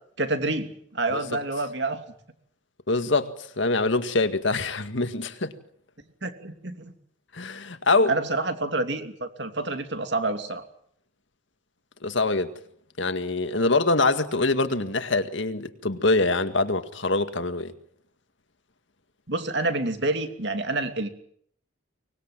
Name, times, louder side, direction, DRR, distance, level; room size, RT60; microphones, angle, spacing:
voice 1, 0.2-2.0 6.2-6.9 8.1-10.6 19.3-21.1, right 2 dB, 60° right, 2.9 m, -28 dB
voice 2, 2.9-5.5 7.3-8.1 12.0-12.5 13.0-17.7, left 3 dB, 70° left, 2.0 m, -24 dB
24.5 x 20.5 x 8.9 m
head